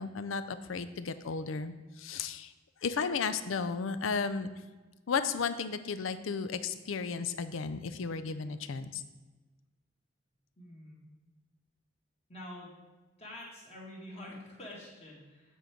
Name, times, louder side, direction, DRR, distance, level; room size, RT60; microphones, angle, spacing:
voice 1, 0.0-2.5 2.8-4.5 5.1-9.0, left 5 dB, 80° left, 12 dB, 0.5 m, -34 dB
voice 2, 10.6-11.0 12.3-12.8 13.2-15.6, left 1 dB, 35° left, -3 dB, 2.0 m, -47 dB
8.5 x 4.6 x 5.1 m, 1.2 s
head